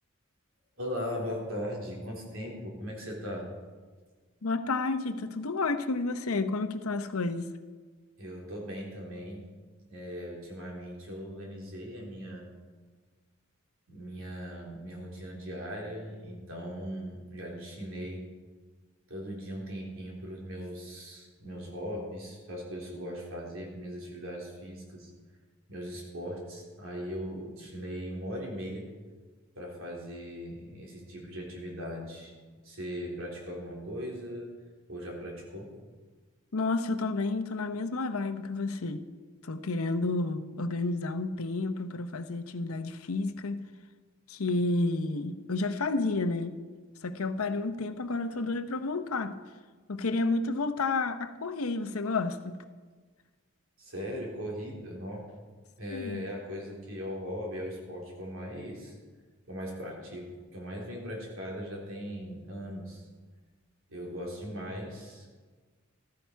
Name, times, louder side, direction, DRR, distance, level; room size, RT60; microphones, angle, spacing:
voice 1, 0.8-3.5 8.2-9.4 9.9-12.5 13.9-18.3 19.1-25.1 25.7-28.9 29.6-32.3 32.6-34.5 34.9-35.7 53.8-55.3 55.8-59.0 59.5-63.0 63.9-65.3, equal, 70° right, 3.8 m, -39 dB
voice 2, 4.4-7.5 36.5-39.0 39.4-43.6 44.3-46.6 47.0-49.4 49.9-52.6 55.9-56.2, left 3 dB, 80° left, 0.8 m, -31 dB
15.0 x 13.5 x 4.6 m
head